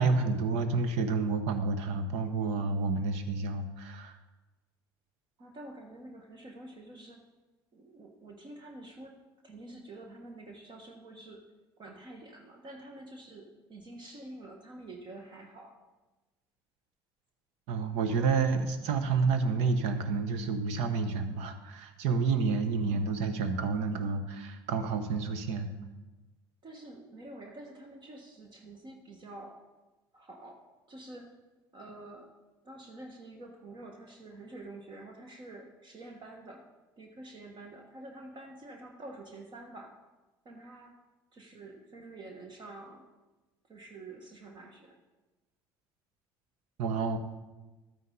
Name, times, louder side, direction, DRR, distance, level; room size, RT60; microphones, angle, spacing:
voice 1, 0.0-4.1 17.7-25.7 46.8-47.2, right 4 dB, 65° right, 9 dB, 1.0 m, -29 dB
voice 2, 5.4-7.2 7.7-9.2 9.4-11.5 11.8-15.8 22.8-23.3 26.6-29.6 30.1-30.6 30.9-31.3 31.7-32.3 32.6-36.6 37.0-39.9 40.4-40.9 41.3-43.0 43.7-45.0, right 2 dB, 40° right, 2 dB, 1.4 m, -48 dB
12.0 x 9.4 x 3.9 m, 1.1 s
hypercardioid pair, 60°, 12 cm